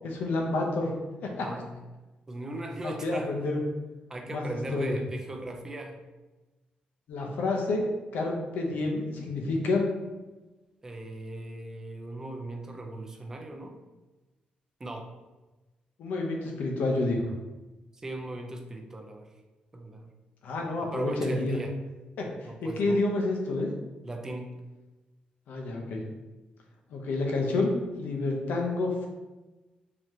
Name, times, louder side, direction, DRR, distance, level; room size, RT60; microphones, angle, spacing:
voice 1, 0.0-0.9 1.2-1.5 2.8-3.6 4.3-5.0 7.1-7.8 8.1-9.9 16.0-17.3 20.4-21.6 22.2-23.7 25.5-26.0 26.9-29.1, left 2 dB, 75° left, 1 dB, 0.7 m, -29 dB
voice 2, 1.4-1.8 2.3-3.3 4.1-6.0 10.8-13.8 14.8-15.1 18.0-19.3 19.7-20.1 20.8-21.7 22.4-23.0 24.0-24.5, right 2 dB, 15° right, 3 dB, 0.4 m, -38 dB
4.1 x 2.8 x 3.1 m, 1.1 s
wide cardioid pair, 170°, 3 cm